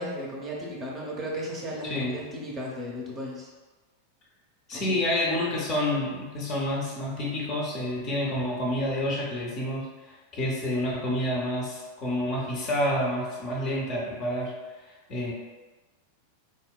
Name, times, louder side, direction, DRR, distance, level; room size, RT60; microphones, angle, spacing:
voice 1, 0.0-3.5 4.7-4.9, equal, 25° right, -3 dB, 0.6 m, -35 dB
voice 2, 1.8-2.1 4.7-14.5 14.9-15.3, left 1 dB, 35° left, -3 dB, 0.7 m, -29 dB
3.7 x 2.1 x 2.3 m, 1.3 s
figure-of-eight pair, 90°, 0 cm